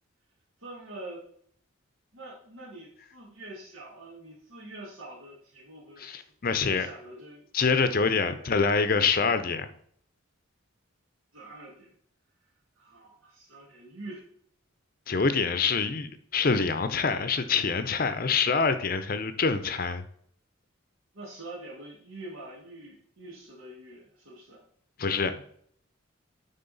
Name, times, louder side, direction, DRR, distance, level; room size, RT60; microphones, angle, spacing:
voice 1, 0.6-1.2 2.1-6.3 6.6-7.5 8.3-8.6 11.3-11.9 12.8-14.3 21.1-24.6, right 2 dB, 80° right, -6 dB, 1.9 m, -45 dB
voice 2, 6.0-6.9 7.5-9.7 15.1-20.0 25.0-25.4, left 5 dB, 45° left, 11 dB, 0.6 m, -26 dB
9.3 x 3.7 x 4.0 m, 0.64 s
head